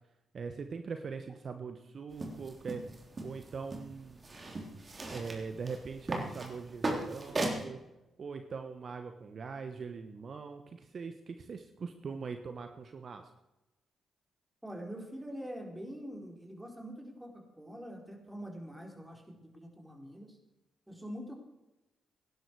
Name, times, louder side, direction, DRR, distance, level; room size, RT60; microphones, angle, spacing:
voice 1, 0.3-2.8 3.2-4.2 5.1-7.8 8.2-10.6 10.9-13.2, right 5 dB, 55° right, 7 dB, 1.2 m, -41 dB
sound 1, 2.1-7.6, right 2 dB, 40° right, 3.6 m, -38 dB
voice 2, 14.6-20.4 20.9-21.3, equal, 10° right, 2 dB, 4.3 m, -44 dB
18.0 x 11.0 x 4.8 m, 0.96 s
hypercardioid pair, 45°, 0 cm